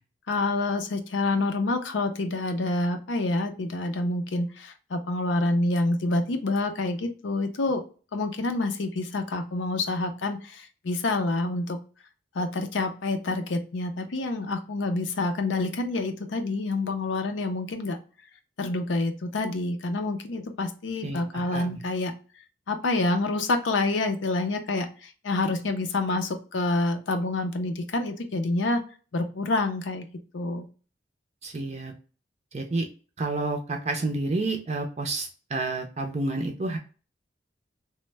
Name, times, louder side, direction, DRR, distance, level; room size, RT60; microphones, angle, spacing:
voice 1, 0.3-7.8 8.1-11.8 12.3-18.0 18.6-22.1 22.7-28.8 29.1-30.1 30.3-30.7, left 2 dB, 85° left, 6 dB, 0.5 m, -27 dB
voice 2, 21.0-21.8 31.4-31.9 32.5-32.9 33.2-36.8, right 2 dB, 35° right, 3 dB, 0.4 m, -30 dB
3.1 x 2.1 x 3.2 m, 0.36 s
head